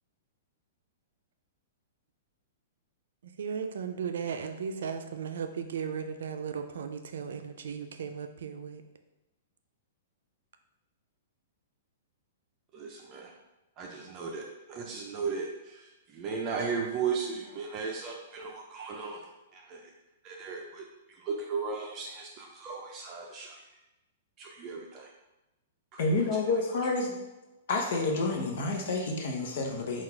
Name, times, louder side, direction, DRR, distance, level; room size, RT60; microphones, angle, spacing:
voice 1, 3.4-8.8, right 6 dB, 75° right, 7 dB, 0.4 m, -36 dB
voice 2, 12.7-13.3 13.8-19.3 19.5-19.9 20.2-23.6 24.4-25.1 25.9-26.0, right 5 dB, 25° right, -1 dB, 0.5 m, -36 dB
voice 3, 26.0-27.2 27.7-30.0, left 3 dB, 60° left, 1 dB, 0.9 m, -29 dB
3.9 x 2.4 x 4.4 m, 0.99 s
hypercardioid pair, 160°, 0 cm